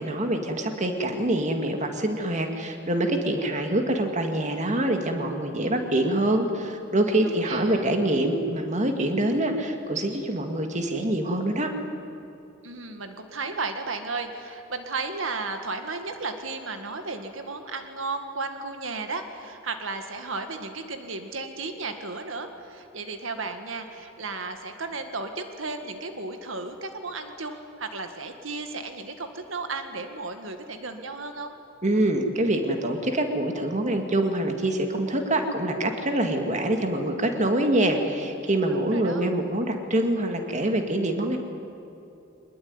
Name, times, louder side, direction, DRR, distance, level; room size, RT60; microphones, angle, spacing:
voice 1, 0.0-11.7 31.8-41.4, right 1 dB, 40° right, 5 dB, 2.2 m, -25 dB
voice 2, 7.2-7.9 12.6-31.5 38.7-39.3, right 3 dB, 90° right, 7 dB, 1.9 m, -34 dB
23.5 x 21.0 x 9.7 m, 2.8 s
head